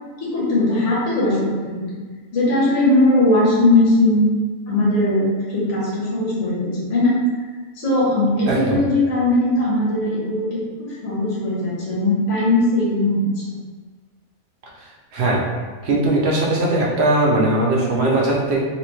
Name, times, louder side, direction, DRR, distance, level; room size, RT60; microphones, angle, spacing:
voice 1, 0.2-2.0 2.3-4.3 4.7-7.5 7.7-13.6, left 1 dB, 60° left, -6 dB, 1.4 m, -19 dB
voice 2, 8.5-8.8 14.8-15.4 15.8-18.6, right 2 dB, 55° right, -3 dB, 0.9 m, -19 dB
3.1 x 2.9 x 3.2 m, 1.4 s
omnidirectional pair, 1.5 m